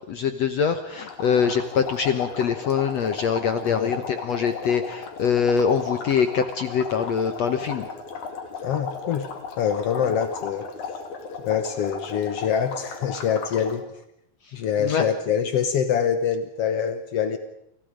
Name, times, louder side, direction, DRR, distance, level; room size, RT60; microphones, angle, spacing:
voice 1, 0.1-7.9 14.8-15.1, left 6 dB, 65° left, 8 dB, 1.7 m, -24 dB
sound 1, 1.0-13.8, left 5 dB, 50° left, 3.9 m, -35 dB
voice 2, 8.6-9.3 9.6-10.7 11.4-13.8 14.5-17.4, left 8 dB, 80° left, 9 dB, 1.3 m, -25 dB
29.5 x 27.5 x 5.1 m, 0.79 s
omnidirectional pair, 4.5 m